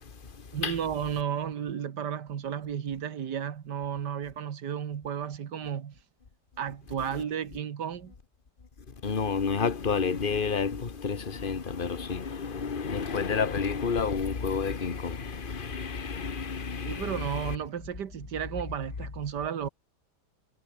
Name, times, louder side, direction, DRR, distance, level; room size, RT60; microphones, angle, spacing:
voice 1, 0.5-5.9 6.6-8.1 16.9-19.7, right 8 dB, 80° right, 2.0 m, -33 dB
voice 2, 9.0-17.6, left 5 dB, 30° left, 1.7 m, -30 dB
omnidirectional pair, 1.8 m